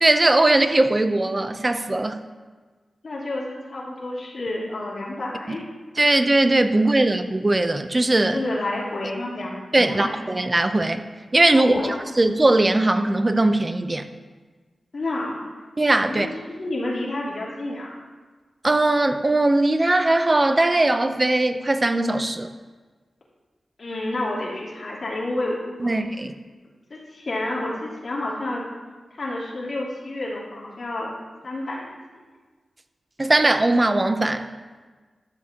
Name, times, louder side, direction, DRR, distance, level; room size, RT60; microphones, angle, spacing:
voice 1, 0.0-2.2 5.5-5.6 6.0-8.4 9.7-11.0 11.3-11.7 12.2-14.1 15.8-16.3 18.6-22.5 25.8-26.4 33.2-34.4, right 2 dB, 30° right, 8 dB, 0.7 m, -20 dB
voice 2, 3.0-5.6 8.3-9.6 9.8-10.1 11.5-12.0 14.9-15.4 16.1-16.3 16.6-17.9 23.8-25.9 26.9-28.6 29.1-31.1 31.4-31.9, left 2 dB, 60° left, -6 dB, 2.6 m, -29 dB
12.0 x 7.5 x 2.9 m, 1.4 s
cardioid pair, 60°, 0 cm